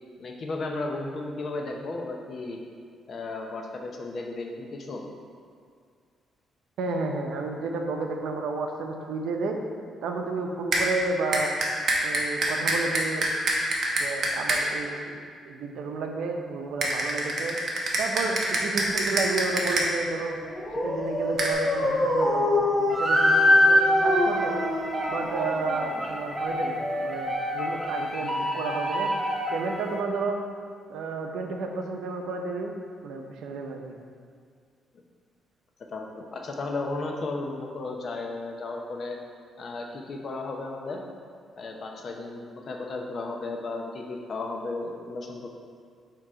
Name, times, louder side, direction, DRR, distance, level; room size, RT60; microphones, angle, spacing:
voice 1, 0.2-2.6 3.1-5.0 35.9-39.2 39.6-41.0 41.6-45.5, left 3 dB, 50° left, 1 dB, 0.8 m, -34 dB
voice 2, 6.8-9.6 10.0-11.5 12.0-13.3 14.0-17.6 18.0-20.4 20.8-24.6 25.1-29.1 29.5-30.4 30.9-32.7 33.0-34.0, right 3 dB, 90° right, 3 dB, 0.6 m, -31 dB
sound 1, 10.7-10.8 11.3-14.6 16.8-19.9 21.4-21.5, right 2 dB, 50° right, 1.0 m, -25 dB
Dog, 20.4-26.1, left 1 dB, 15° left, 1.0 m, -27 dB
sound 2, 22.9-30.0, left 1 dB, 10° right, 0.9 m, -25 dB
7.6 x 2.9 x 4.8 m, 2.1 s
cardioid pair, 125°, 0 cm